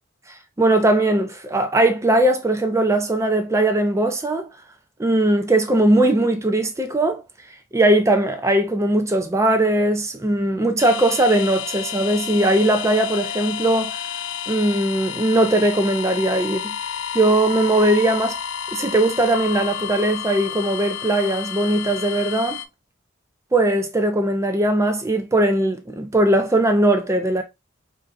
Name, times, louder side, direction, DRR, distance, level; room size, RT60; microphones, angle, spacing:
voice 1, 0.6-4.5 5.0-7.2 7.7-14.0 14.5-16.7 17.1-18.4 18.7-22.6 23.5-27.4, right 1 dB, 15° right, 0.4 m, -19 dB
sound 1, 10.8-22.7, left 8 dB, 90° left, 0.4 m, -31 dB
4.7 x 2.6 x 2.4 m
head